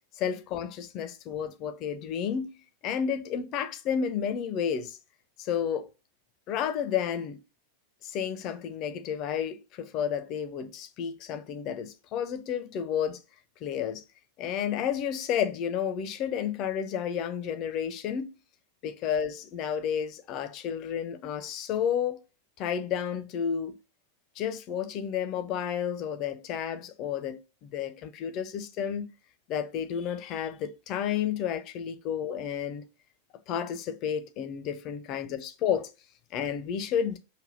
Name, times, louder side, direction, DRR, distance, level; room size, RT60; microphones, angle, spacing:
voice 1, 0.2-5.0 5.4-5.9 6.5-7.4 8.0-13.2 13.6-14.0 14.4-18.3 18.8-22.2 22.6-23.8 24.4-29.1 29.5-32.9 33.5-35.9 36.3-37.2, left 8 dB, 40° left, 0.5 m, -31 dB
3.4 x 2.2 x 3.9 m
figure-of-eight pair, 90°, 0 cm